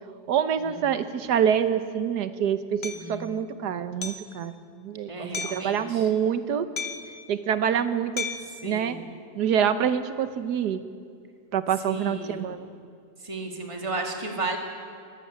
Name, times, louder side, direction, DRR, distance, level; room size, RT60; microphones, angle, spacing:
voice 1, 0.3-6.7 7.3-8.3 8.6-9.0 9.4-10.8 11.5-12.7, right 8 dB, 85° right, 11 dB, 1.6 m, -26 dB
Hammer, 2.8-3.0 4.0-4.3 5.3-5.7 6.8-7.2 8.2-8.6, left 4 dB, 45° left, 1.2 m, -33 dB
voice 2, 2.9-3.3 5.1-6.1 8.6-9.0 11.8-12.5 13.2-14.6, right 2 dB, 20° right, 2 dB, 2.2 m, -34 dB
23.5 x 14.5 x 8.7 m, 2.3 s
omnidirectional pair, 1.7 m